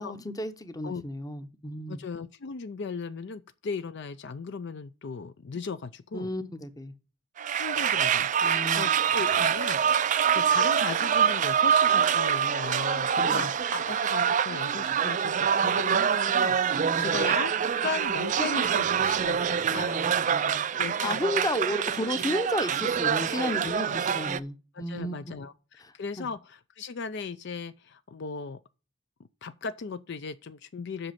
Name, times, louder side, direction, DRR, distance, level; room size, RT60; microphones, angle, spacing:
voice 1, 0.0-2.0 6.1-6.9 8.4-8.9 13.2-13.5 16.7-17.1 19.7-20.6 21.0-25.2 25.8-26.3, left 1 dB, 15° left, 0.8 m, -33 dB
voice 2, 1.9-6.3 7.5-17.5 17.8-20.0 20.7-21.2 23.6-24.0 24.7-28.6 29.4-31.1, left 5 dB, 55° left, 0.4 m, -37 dB
sound 1, 7.4-24.4, right 8 dB, 35° right, 0.3 m, -25 dB
7.8 x 6.2 x 5.7 m
head